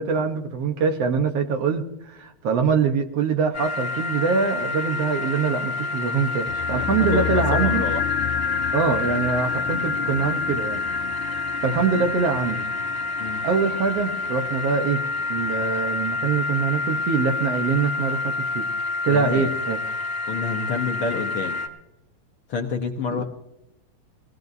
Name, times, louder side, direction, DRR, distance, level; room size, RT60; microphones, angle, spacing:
voice 1, 0.0-7.8 8.7-10.8 11.1-12.6 13.4-15.0 15.3-18.7 19.0-19.8, right 5 dB, 65° right, 6 dB, 2.0 m, -24 dB
sound 1, 3.5-21.7, left 3 dB, 35° left, 1.3 m, -28 dB
sound 2, 6.5-16.7 17.0-17.1, left 15 dB, 85° left, 2.1 m, -32 dB
voice 2, 6.8-8.0 11.9-12.0 13.2-13.4 19.1-19.5 20.3-21.6 22.5-23.2, left 4 dB, 60° left, 2 dB, 1.6 m, -28 dB
22.5 x 17.5 x 2.7 m, 0.89 s
omnidirectional pair, 3.4 m